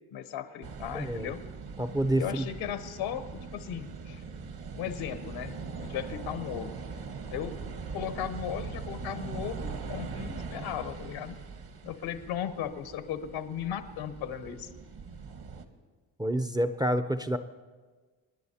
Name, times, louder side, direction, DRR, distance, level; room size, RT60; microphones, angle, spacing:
voice 1, 0.1-1.4 2.2-4.2 4.7-6.7 7.3-7.6 7.9-11.4 11.8-14.7, left 9 dB, 80° left, 11 dB, 1.0 m, -36 dB
sound 1, 0.6-15.6, right 5 dB, 50° right, 1.3 m, -41 dB
voice 2, 0.9-1.3 1.8-2.4 16.2-17.4, right 1 dB, 10° right, 10 dB, 0.5 m, -28 dB
26.5 x 10.5 x 2.8 m, 1.4 s
supercardioid pair, 60°, 47 cm